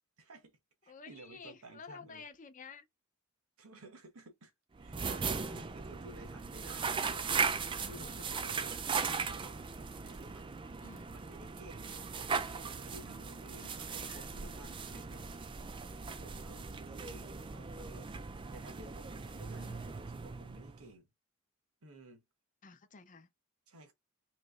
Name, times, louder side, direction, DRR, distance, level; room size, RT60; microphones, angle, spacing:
voice 1, 0.2-2.2 3.6-4.5 4.8-7.5 7.9-9.7 10.0-10.7 11.1-15.2 16.1-21.1 21.8-22.2 23.7-23.9, right 2 dB, 75° right, 1.2 m, -54 dB
voice 2, 0.9-2.9 7.8-8.3 10.8-11.1 13.6-14.3 19.6-19.8 22.6-23.3, left 5 dB, 35° left, 0.6 m, -52 dB
sound 1, 4.8-20.9, right 5 dB, 20° right, 0.4 m, -38 dB
3.2 x 2.9 x 3.7 m
head